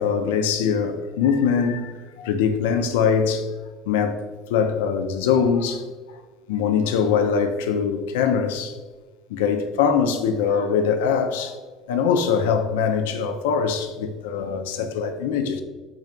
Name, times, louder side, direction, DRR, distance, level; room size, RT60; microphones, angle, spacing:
voice 1, 0.0-3.5 3.9-4.2 4.5-5.8 6.5-8.8 9.3-11.6 11.9-15.6, left 6 dB, 70° left, 0.3 m, -22 dB
3.8 x 2.4 x 4.2 m
hypercardioid pair, 65°, 0 cm